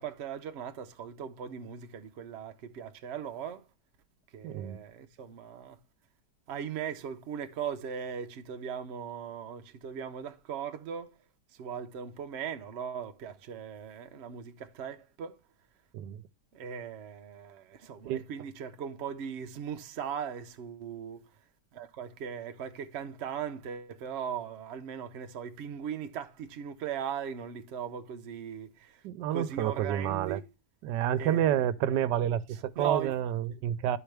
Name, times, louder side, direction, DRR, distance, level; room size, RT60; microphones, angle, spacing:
voice 1, 0.0-3.7 4.3-5.8 6.5-11.2 11.5-15.4 16.5-21.3 21.7-29.0 29.3-30.4 31.2-32.0 32.5-33.1 33.5-33.6, right 8 dB, 60° right, 0.7 m, -39 dB
voice 2, 4.4-4.8 15.9-16.2 18.0-18.2 29.0-30.4 30.8-34.0, right 10 dB, 80° right, 1.2 m, -29 dB
11.5 x 4.6 x 3.3 m
omnidirectional pair, 1.9 m